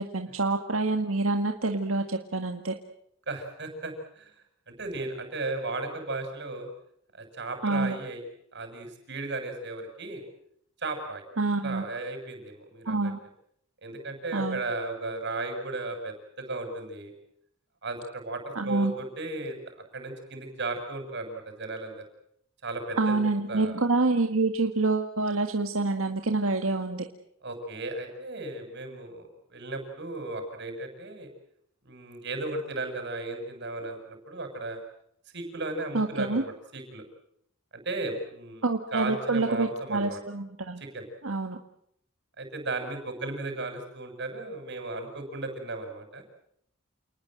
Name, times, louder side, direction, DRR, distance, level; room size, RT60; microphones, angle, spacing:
voice 1, 0.0-2.8 7.6-8.0 11.4-11.8 12.9-13.2 14.3-14.6 18.6-18.9 23.0-27.1 35.9-36.4 38.6-40.8 41.2-41.6, right 3 dB, 90° right, 5 dB, 1.8 m, -27 dB
voice 2, 3.3-4.3 4.7-6.7 7.2-8.2 8.5-10.2 10.8-11.2 11.6-13.1 13.8-17.1 17.8-22.1 22.6-23.2 23.5-23.7 27.4-31.3 31.8-34.8 35.3-37.0 37.7-38.7 38.9-40.2 40.8-41.1 42.4-46.2, right 2 dB, 55° right, 6 dB, 7.1 m, -35 dB
29.0 x 20.0 x 7.8 m, 0.72 s
head